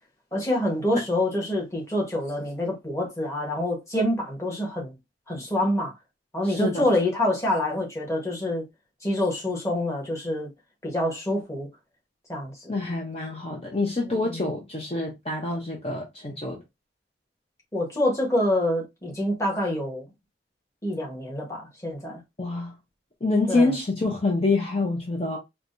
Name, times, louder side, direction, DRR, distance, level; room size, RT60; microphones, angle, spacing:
voice 1, 0.3-4.9 5.3-5.9 6.3-8.6 9.0-10.5 10.8-11.7 12.3-12.8 14.0-14.5 17.7-20.1 20.8-22.2 23.5-23.7, left 1 dB, 15° left, 1.2 m, -26 dB
voice 2, 6.4-6.9 12.7-16.6 22.4-22.7 23.2-25.4, left 3 dB, 35° left, 0.7 m, -26 dB
4.6 x 2.2 x 2.5 m
head